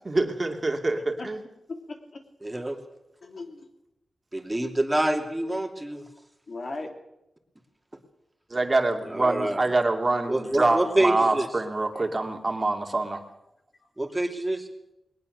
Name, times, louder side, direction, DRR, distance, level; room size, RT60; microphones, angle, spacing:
voice 1, 0.1-1.4 8.5-13.2, right 2 dB, 30° right, 3 dB, 2.4 m, -25 dB
voice 2, 0.9-1.3 1.7-2.2 2.5-2.6 3.2-3.7 6.5-6.9, left 3 dB, 50° left, 4 dB, 2.9 m, -38 dB
voice 3, 2.4-2.8 4.3-6.1 9.1-9.7 10.3-11.5 14.0-14.7, right 1 dB, 15° right, 4 dB, 2.6 m, -26 dB
21.0 x 19.0 x 6.6 m, 0.89 s
wide cardioid pair, 115°, 0 cm